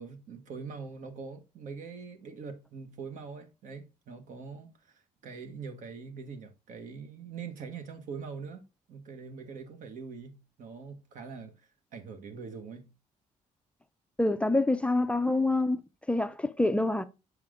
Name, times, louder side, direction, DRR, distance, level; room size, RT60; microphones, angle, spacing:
voice 1, 0.0-8.6 8.9-11.5 11.9-12.9, right 5 dB, 70° right, 1.4 m, -43 dB
voice 2, 14.2-15.8 16.1-17.0, left 2 dB, 10° left, 0.4 m, -26 dB
7.3 x 4.9 x 3.7 m
cardioid pair, 130°, 14 cm